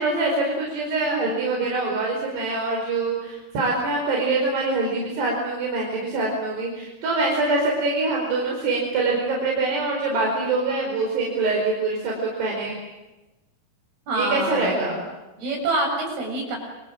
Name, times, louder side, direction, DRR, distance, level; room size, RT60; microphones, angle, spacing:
voice 1, 0.0-12.8 14.1-15.1, right 3 dB, 85° right, -1 dB, 7.0 m, -24 dB
voice 2, 14.1-14.8 15.4-16.6, right 2 dB, 70° right, 1 dB, 9.5 m, -26 dB
29.5 x 25.0 x 7.7 m, 1.0 s
omnidirectional pair, 4.7 m